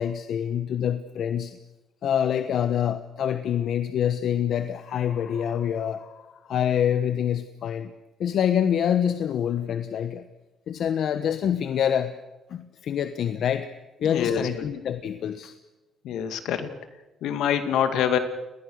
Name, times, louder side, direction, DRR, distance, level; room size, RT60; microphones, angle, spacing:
voice 1, 0.0-1.6 2.0-7.9 8.2-10.3 10.7-12.1 12.5-13.7 14.0-15.5, left 9 dB, 70° left, 10 dB, 1.2 m, -26 dB
voice 2, 14.0-14.7 16.0-16.7 17.2-18.2, left 8 dB, 85° left, 9 dB, 2.3 m, -25 dB
30.0 x 20.5 x 6.5 m, 1.1 s
cardioid pair, 90°, 0 cm